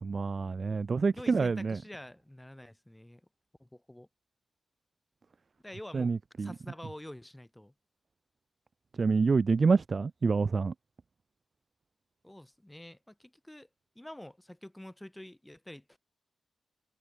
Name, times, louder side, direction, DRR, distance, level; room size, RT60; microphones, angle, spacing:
voice 1, 0.0-1.8 5.9-6.5 9.0-10.7, right 4 dB, 45° right, 0.3 m, -27 dB
voice 2, 1.1-3.2 3.6-4.1 5.6-7.7 12.2-13.7 14.0-16.0, left 1 dB, 10° left, 2.0 m, -47 dB
cardioid pair, 90°, 0 cm